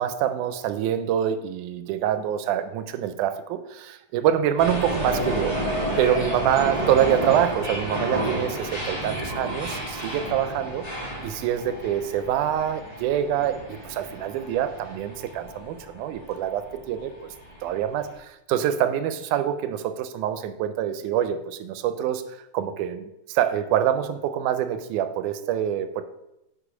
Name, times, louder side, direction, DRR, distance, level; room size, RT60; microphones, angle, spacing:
voice 1, 0.0-5.6 6.0-10.8 11.2-17.3 17.6-26.0, right 10 dB, 85° right, 10 dB, 2.1 m, -25 dB
sound 1, 4.6-18.2, equal, 30° left, 0.7 m, -31 dB
6.8 x 4.8 x 4.9 m, 0.89 s
omnidirectional pair, 3.5 m